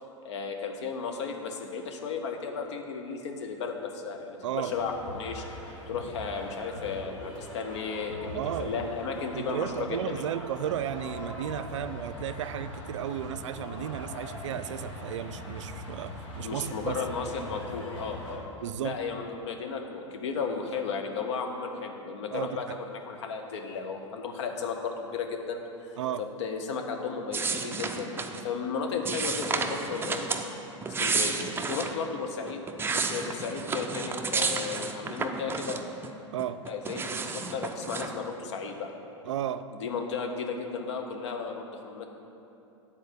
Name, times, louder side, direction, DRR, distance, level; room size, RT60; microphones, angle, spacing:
voice 1, 0.2-5.4 5.9-10.2 16.4-18.4 18.8-30.5 31.0-35.8 36.7-38.9 39.8-42.1, left 5 dB, 65° left, 3 dB, 1.0 m, -34 dB
voice 2, 4.4-4.8 8.3-17.0 18.6-19.0 22.3-22.7 26.0-26.3 36.3-36.7 36.9-37.1 39.3-39.7, right 10 dB, 70° right, 12 dB, 0.4 m, -34 dB
sound 1, 4.7-18.4, left 1 dB, 30° left, 2.0 m, -42 dB
sound 2, 27.3-28.4 29.1-30.4 30.8-31.9 32.5-36.1 36.4-38.1, right 4 dB, 15° right, 0.5 m, -31 dB
9.2 x 4.3 x 6.9 m, 2.9 s
figure-of-eight pair, 90°, 16 cm